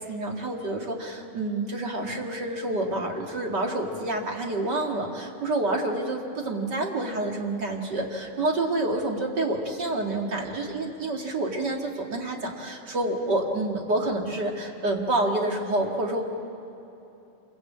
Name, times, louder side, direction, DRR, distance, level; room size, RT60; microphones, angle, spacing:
voice 1, 0.0-16.2, right 2 dB, 35° right, 1 dB, 1.9 m, -28 dB
27.0 x 22.5 x 8.6 m, 3.0 s
omnidirectional pair, 4.4 m